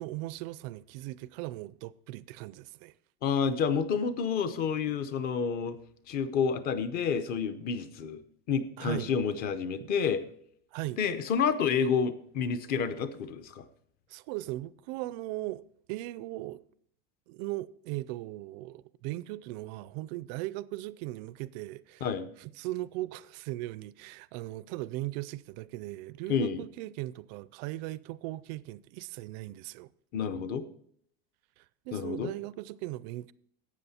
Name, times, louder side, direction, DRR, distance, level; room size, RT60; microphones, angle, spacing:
voice 1, 0.0-2.9 8.8-9.1 9.8-9.9 10.7-11.0 14.1-16.6 17.3-22.1 22.4-29.9 31.6-33.3, right 17 dB, 45° right, 0.4 m, -38 dB
voice 2, 3.2-5.8 6.1-8.2 8.5-10.2 11.0-13.6 22.0-22.3 26.3-26.6 30.1-30.6 31.9-32.3, left 6 dB, 30° left, 0.7 m, -29 dB
12.5 x 8.4 x 4.2 m
supercardioid pair, 170°, 30 cm